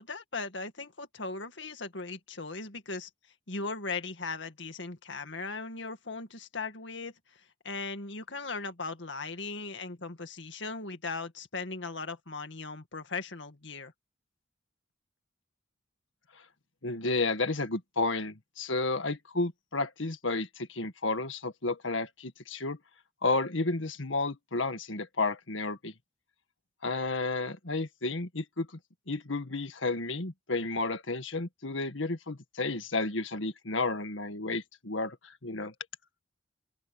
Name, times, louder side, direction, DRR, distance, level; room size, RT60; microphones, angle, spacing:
voice 1, 0.0-3.1 3.5-13.9, left 3 dB, 70° left, 2.1 m, -38 dB
voice 2, 16.8-22.8 23.2-25.9 26.8-28.7 29.1-35.7, left 3 dB, 90° left, 1.8 m, -32 dB
open air
head